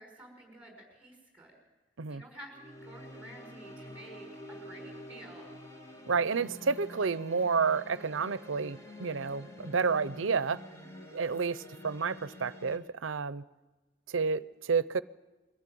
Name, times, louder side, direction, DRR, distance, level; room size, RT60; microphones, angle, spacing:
voice 1, 0.0-1.6 2.1-5.6 10.8-11.0, right 1 dB, 10° right, 2 dB, 5.3 m, -51 dB
sound 1, 2.5-12.8, left 1 dB, 15° left, 1.9 m, -48 dB
voice 2, 6.1-10.6 11.1-13.4 14.1-15.0, right 5 dB, 85° right, 17 dB, 0.7 m, -30 dB
22.5 x 14.5 x 9.2 m, 1.2 s
head